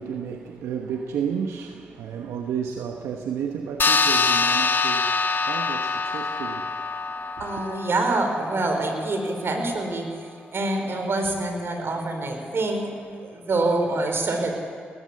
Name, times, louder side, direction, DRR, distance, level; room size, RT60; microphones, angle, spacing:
voice 1, 0.0-7.7, right 7 dB, 85° right, 1.1 m, -32 dB
sound 1, 3.8-8.7, left 4 dB, 45° left, 1.2 m, -24 dB
voice 2, 7.4-12.9 13.2-14.5, right 2 dB, 60° right, 4.6 m, -26 dB
20.0 x 18.5 x 8.4 m
supercardioid pair, 45°, 5 cm